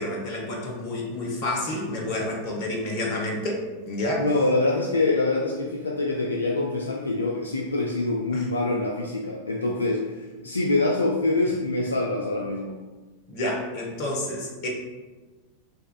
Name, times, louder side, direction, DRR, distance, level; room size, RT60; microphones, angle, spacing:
voice 1, 0.0-4.2 13.3-14.7, left 1 dB, 45° left, 0 dB, 0.9 m, -29 dB
voice 2, 4.2-12.8, left 2 dB, 75° left, -1 dB, 0.3 m, -25 dB
6.3 x 2.4 x 2.2 m, 1.3 s
figure-of-eight pair, 90°, 0 cm